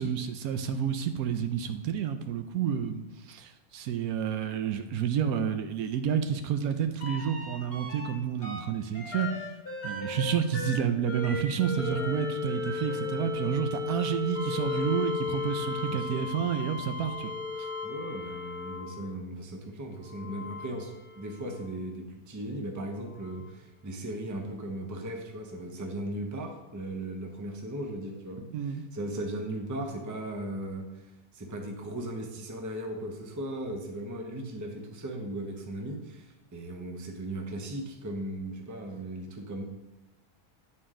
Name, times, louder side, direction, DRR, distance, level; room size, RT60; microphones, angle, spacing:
voice 1, 0.0-9.3 9.8-17.3 28.5-28.8, right 8 dB, 80° right, 8 dB, 1.1 m, -30 dB
sound 1, 7.0-8.1 8.4-19.2 20.0-21.6 23.3-23.4, left 4 dB, 40° left, 1.3 m, -35 dB
voice 2, 15.9-16.2 17.8-20.9 21.2-39.6, right 1 dB, 20° right, 2 dB, 0.5 m, -37 dB
9.0 x 4.3 x 3.7 m, 1.0 s
omnidirectional pair, 1.6 m